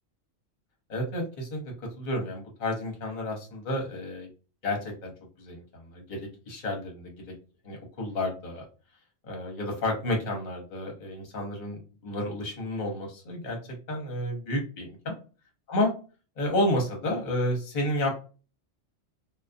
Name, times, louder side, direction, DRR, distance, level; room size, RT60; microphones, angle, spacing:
voice 1, 0.9-4.3 4.6-5.1 5.4-7.3 7.6-8.6 9.2-15.2 15.7-15.9 16.4-18.1, left 1 dB, 45° left, 1 dB, 0.8 m, -31 dB
2.4 x 2.2 x 2.5 m, 0.35 s
omnidirectional pair, 1.3 m